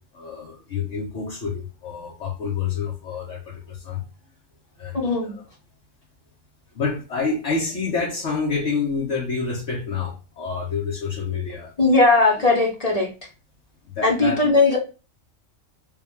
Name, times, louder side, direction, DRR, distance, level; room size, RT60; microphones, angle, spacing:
voice 1, 0.1-4.0 4.8-5.4 6.7-11.7 14.0-14.5, left 5 dB, 60° left, 1.2 m, -28 dB
voice 2, 4.9-5.4 11.8-13.1 14.0-14.8, left 3 dB, 30° left, 1.0 m, -18 dB
3.4 x 2.5 x 3.2 m
omnidirectional pair, 1.4 m